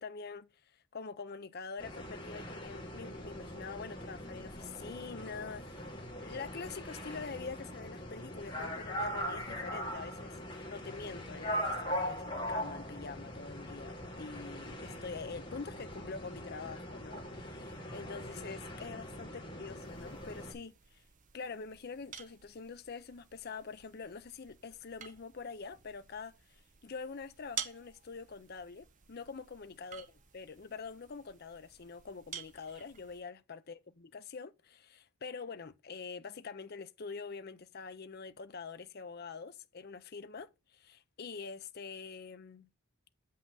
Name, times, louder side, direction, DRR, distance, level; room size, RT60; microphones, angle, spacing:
voice 1, 0.0-5.9 6.2-21.0 21.3-30.1 30.3-42.7, left 5 dB, 45° left, 0.5 m, -45 dB
sound 1, 1.8-20.5, equal, 20° left, 2.2 m, -41 dB
sound 2, 19.8-33.2, right 8 dB, 35° right, 0.7 m, -50 dB
7.4 x 5.6 x 3.9 m
head